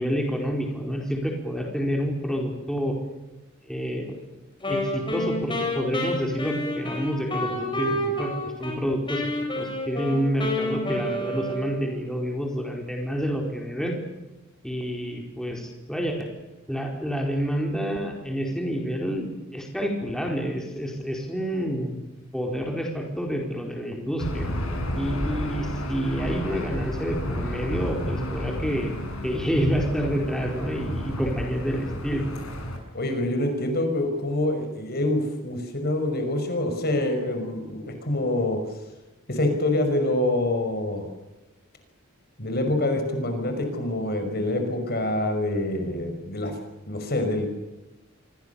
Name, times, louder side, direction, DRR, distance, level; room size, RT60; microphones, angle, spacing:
voice 1, 0.0-3.0 3.7-4.2 4.7-9.3 9.6-14.0 14.6-16.3 16.7-22.0 22.3-24.5 25.0-28.9 29.2-32.3, equal, ahead, 1 dB, 4.5 m, -28 dB
Wind instrument woodwind instrument, 4.6-8.8 9.1-12.0, left 1 dB, 20° left, 7.0 m, -29 dB
Aircraft / Engine, 24.2-32.8, equal, 85° left, 7.5 m, -31 dB
voice 2, 32.9-38.6 39.3-41.1 42.4-46.5 46.9-47.5, left 1 dB, 45° left, 6 dB, 5.8 m, -26 dB
27.5 x 24.5 x 7.1 m, 1.1 s
head